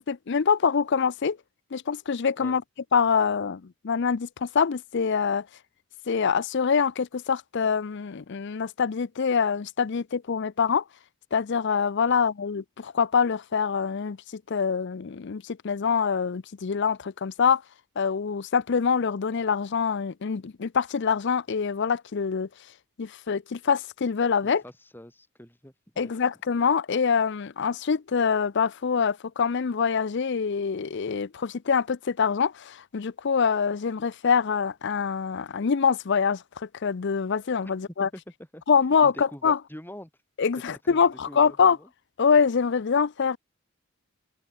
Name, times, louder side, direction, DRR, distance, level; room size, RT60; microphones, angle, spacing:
voice 1, 0.0-1.4 1.7-2.6 2.9-5.4 6.1-10.8 11.3-17.6 18.0-22.5 23.0-24.6 26.0-38.1 38.7-39.6 40.4-41.8 42.2-43.4, left 6 dB, 55° left, 0.5 m, -25 dB
voice 2, 24.4-26.1 38.0-38.2 38.5-38.6 39.0-40.1 40.9-41.9, equal, 10° left, 4.7 m, -45 dB
head